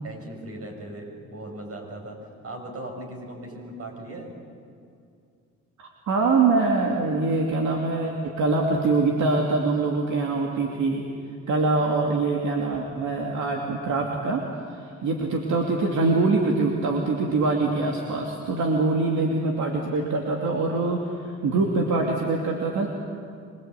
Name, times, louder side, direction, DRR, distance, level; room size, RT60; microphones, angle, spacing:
voice 1, 0.0-2.2 2.4-4.3, right 1 dB, 50° right, 2 dB, 7.2 m, -38 dB
voice 2, 5.8-11.0 11.5-14.4 14.7-21.1 21.4-22.9, right 3 dB, 70° right, 0 dB, 2.9 m, -24 dB
26.0 x 22.5 x 8.4 m, 2.4 s
cardioid pair, 90°, 30 cm